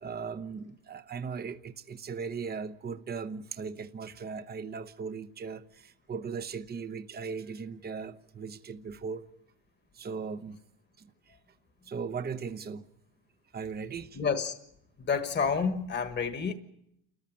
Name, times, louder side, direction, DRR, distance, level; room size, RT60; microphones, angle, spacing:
voice 1, 0.0-9.2 10.0-10.6 11.0-11.1 11.9-12.8 13.5-14.2, right 5 dB, 25° right, 1.0 m, -38 dB
voice 2, 14.1-14.5 15.0-16.5, left 5 dB, 25° left, 1.5 m, -29 dB
29.0 x 14.5 x 9.1 m
cardioid pair, 120°, 39 cm